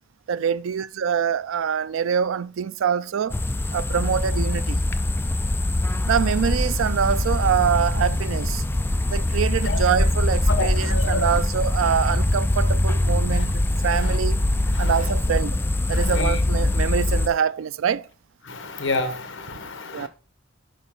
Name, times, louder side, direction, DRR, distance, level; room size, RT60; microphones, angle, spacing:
voice 1, 0.3-3.4 3.7-4.8 6.0-8.6 9.1-14.4 14.8-15.6 15.9-18.1 19.9-20.1, right 7 dB, 85° right, 0.4 m, -25 dB
sound 1, 3.3-17.3, left 1 dB, 10° left, 0.4 m, -23 dB
voice 2, 10.5-11.3 13.3-13.4 14.0-14.2 14.7-14.9 15.9-16.4 18.4-20.1, left 3 dB, 70° left, 1.3 m, -29 dB
11.0 x 4.1 x 3.8 m
head